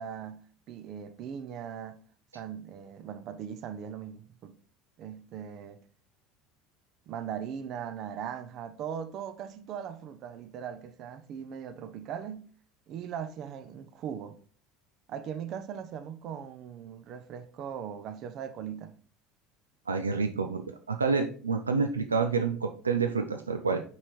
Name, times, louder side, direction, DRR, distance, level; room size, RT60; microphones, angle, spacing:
voice 1, 0.0-2.0 2.3-4.5 5.0-5.8 7.1-12.5 12.9-14.4 15.1-18.9, right 8 dB, 50° right, 0.7 m, -39 dB
voice 2, 19.9-23.8, right 5 dB, 85° right, 0.5 m, -28 dB
5.7 x 4.9 x 4.5 m
figure-of-eight pair, 65°, 0 cm